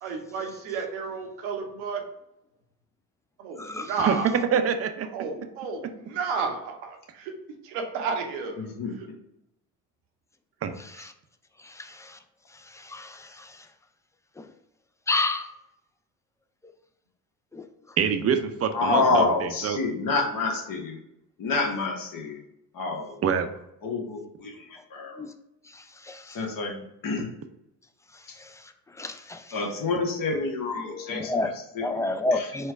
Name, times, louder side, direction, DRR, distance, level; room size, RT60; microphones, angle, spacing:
voice 1, 0.0-2.0 3.4-4.4 5.1-7.3 7.6-9.1, right 5 dB, 85° right, 0.9 m, -32 dB
voice 2, 3.6-3.9 12.9-13.2 15.1-15.5 17.5-17.6 25.2-25.3 26.1-26.2 29.0-29.4 30.9-31.5 31.8-32.7, left 2 dB, 10° left, 0.4 m, -28 dB
voice 3, 4.5-5.1 10.6-10.7 18.0-19.8 23.2-23.5, right 7 dB, 35° right, 0.6 m, -25 dB
voice 4, 18.7-21.0 21.4-22.4 22.7-23.2 23.8-24.6 24.9-25.1 26.3-27.3 29.5-32.5, left 3 dB, 50° left, 1.2 m, -28 dB
4.5 x 2.2 x 4.6 m
hypercardioid pair, 65°, 42 cm